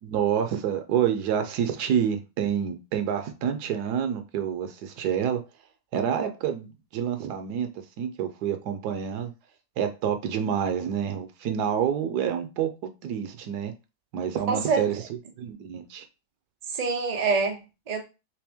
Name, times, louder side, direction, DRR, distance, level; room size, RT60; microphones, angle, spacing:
voice 1, 0.0-5.4 5.9-7.7 8.0-9.3 9.8-13.7 14.1-15.0 15.4-16.0, right 8 dB, 70° right, 1.1 m, -28 dB
voice 2, 14.5-14.8 16.7-18.0, right 4 dB, 85° right, 0.3 m, -26 dB
3.3 x 3.3 x 3.5 m
omnidirectional pair, 1.9 m